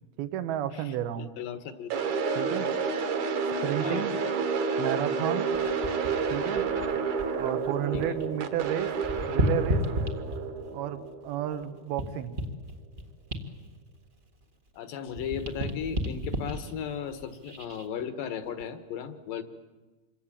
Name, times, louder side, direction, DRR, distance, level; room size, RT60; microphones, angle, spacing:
voice 1, 0.2-1.3 2.4-2.7 3.6-4.1 4.8-5.5 6.3-6.6 7.4-8.9 9.3-9.8 10.7-12.4, right 11 dB, 80° right, 11 dB, 3.1 m, -32 dB
voice 2, 0.7-2.1 3.8-4.0 5.6-5.7 6.7-7.0 7.9-8.2 14.7-19.4, left 8 dB, 70° left, 10 dB, 2.9 m, -36 dB
sound 1, 1.9-12.0, right 5 dB, 60° right, 2.6 m, -30 dB
sound 2, 5.5-8.3 8.5-10.7 11.2-14.8 15.1-17.9 18.4-18.6, equal, 35° right, 0.8 m, -33 dB
27.0 x 23.0 x 8.9 m, 1.2 s
omnidirectional pair, 4.4 m